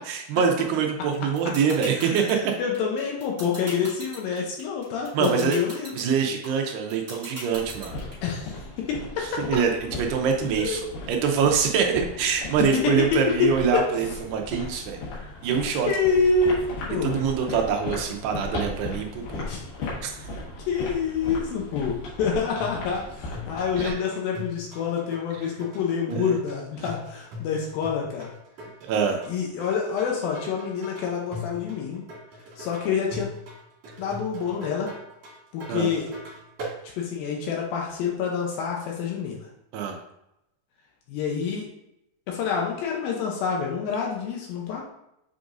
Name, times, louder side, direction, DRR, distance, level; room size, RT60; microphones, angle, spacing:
voice 1, 0.1-2.4 5.1-5.6 5.9-7.9 9.2-15.0 15.4-15.9 17.0-19.5 20.0-20.2 23.8-24.0 26.1-26.3 28.9-29.2 35.7-35.9 39.7-40.0, right 6 dB, 80° right, 3 dB, 2.5 m, -25 dB
sound 1, 1.1-8.1, right 1 dB, 25° right, 1.8 m, -38 dB
voice 2, 2.0-5.9 8.2-9.4 10.6-10.8 12.7-12.9 13.7-13.8 15.1-15.3 15.9-16.6 16.9-17.1 19.5-19.6 20.7-28.3 29.3-32.0 32.6-33.3 34.0-34.9 35.5-36.1 37.0-39.5 41.1-41.7 42.3-44.8, left 5 dB, 85° left, -1 dB, 2.1 m, -27 dB
sound 2, 7.5-23.9, left 2 dB, 60° left, 2.6 m, -37 dB
sound 3, 22.6-36.8, left 2 dB, 45° right, 2.9 m, -40 dB
7.8 x 4.9 x 2.6 m, 0.84 s
omnidirectional pair, 5.1 m